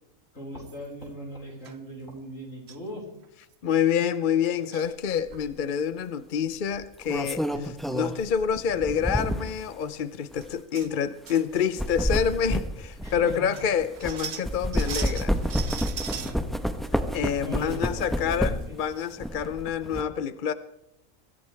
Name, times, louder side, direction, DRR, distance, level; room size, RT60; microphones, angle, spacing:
voice 1, 0.3-3.1 13.0-13.5 16.1-16.4 17.4-18.8, equal, 70° left, 5.3 m, -39 dB
sound 1, 0.6-1.0 1.6-1.8 2.7-2.9 3.2-3.3 3.5-3.8 4.4-4.9 5.3-5.7 7.5-7.6 7.9-8.1 8.5-8.6 9.4-9.5 9.9-10.0 10.4-10.9 11.3-11.9 12.2-12.3 12.9-13.0 13.3-16.4 16.8-17.7 18.1-18.2 18.6-18.7 19.0-19.1, right 7 dB, 55° right, 1.1 m, -39 dB
voice 2, 3.6-15.3 17.1-20.5, left 8 dB, 50° left, 0.7 m, -27 dB
sound 2, 5.3-5.5 6.8-9.6 10.3-10.5 11.5-14.1 14.4-18.8 19.2-20.0, equal, ahead, 0.9 m, -29 dB
24.0 x 15.0 x 3.4 m
omnidirectional pair, 1.4 m